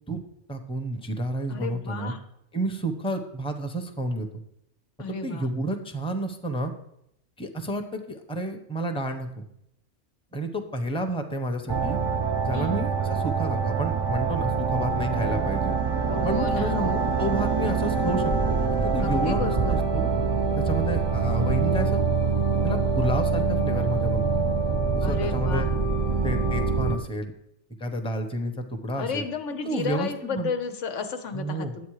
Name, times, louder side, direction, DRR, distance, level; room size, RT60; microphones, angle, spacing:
voice 1, 0.5-2.1 2.5-4.4 5.1-6.7 7.4-9.4 10.3-12.0 12.4-15.7 16.2-18.5 18.8-20.1 20.6-22.0 22.6-24.3 24.9-25.7 26.2-27.3 27.8-29.2 29.6-30.5 31.3-31.7, right 1 dB, 5° left, 5 dB, 0.8 m, -30 dB
voice 2, 1.5-2.2 5.0-5.5 12.5-12.8 16.1-17.1 19.0-19.8 25.0-25.7 29.0-31.9, left 5 dB, 90° left, 7 dB, 1.3 m, -33 dB
sound 1, 11.7-27.0, right 4 dB, 30° right, 0.5 m, -25 dB
10.5 x 8.1 x 4.9 m, 0.78 s
omnidirectional pair, 1.2 m